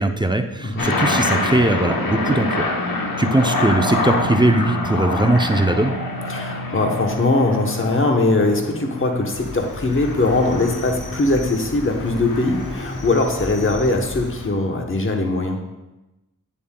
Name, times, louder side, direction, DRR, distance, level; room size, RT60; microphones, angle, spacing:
voice 1, 0.0-2.7 3.2-6.0, right 1 dB, 15° right, 6 dB, 0.5 m, -19 dB
sound 1, 0.8-14.5, left 2 dB, 85° left, 0.9 m, -26 dB
voice 2, 6.3-15.6, left 2 dB, 40° left, 3 dB, 0.9 m, -21 dB
Cricket, 9.3-14.5, left 2 dB, 60° left, 1.1 m, -36 dB
9.2 x 7.1 x 2.2 m, 1.0 s
wide cardioid pair, 60°, 34 cm